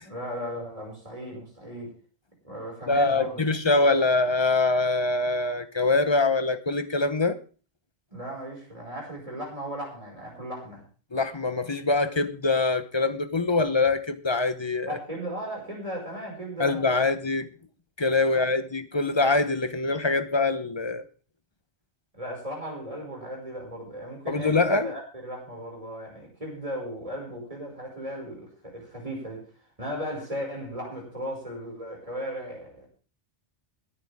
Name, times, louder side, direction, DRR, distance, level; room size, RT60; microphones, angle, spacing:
voice 1, 0.0-1.9 2.4-3.4 8.1-10.8 14.8-17.1 18.3-18.4 22.1-29.5 29.8-32.9, equal, 30° right, -1 dB, 6.1 m, -36 dB
voice 2, 2.9-7.4 11.1-14.9 16.6-17.5 18.0-21.0 24.3-24.9, left 3 dB, 25° left, 11 dB, 1.0 m, -24 dB
21.5 x 10.0 x 3.7 m, 0.36 s
omnidirectional pair, 1.2 m